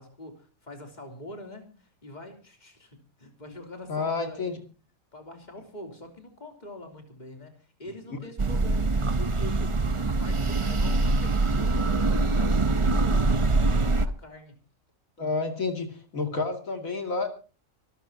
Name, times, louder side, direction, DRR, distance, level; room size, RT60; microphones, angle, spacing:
voice 1, 0.0-4.6 5.1-14.6, left 1 dB, 30° left, 4 dB, 3.5 m, -44 dB
voice 2, 3.9-4.6 15.2-17.3, left 4 dB, 75° left, 5 dB, 2.9 m, -29 dB
sound 1, 8.4-14.1, right 3 dB, 30° right, 0.7 m, -24 dB
25.5 x 13.5 x 2.8 m, 0.36 s
omnidirectional pair, 1.4 m